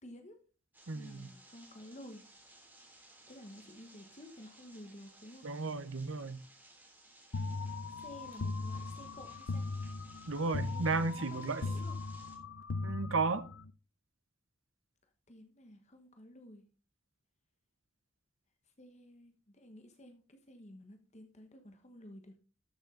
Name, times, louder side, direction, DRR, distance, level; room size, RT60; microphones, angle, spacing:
voice 1, 0.0-0.4 0.9-2.2 3.3-5.5 7.9-9.7 10.7-12.0 15.3-16.6 18.8-22.4, left 1 dB, 35° left, 1.2 m, -52 dB
sound 1, 0.7-12.4, right 2 dB, 10° right, 3.3 m, -60 dB
voice 2, 0.9-1.3 5.4-6.4 10.3-11.6 12.8-13.5, right 3 dB, 75° right, 0.8 m, -34 dB
sound 2, 7.3-13.7, left 3 dB, 85° left, 0.7 m, -39 dB
12.5 x 7.2 x 3.8 m
head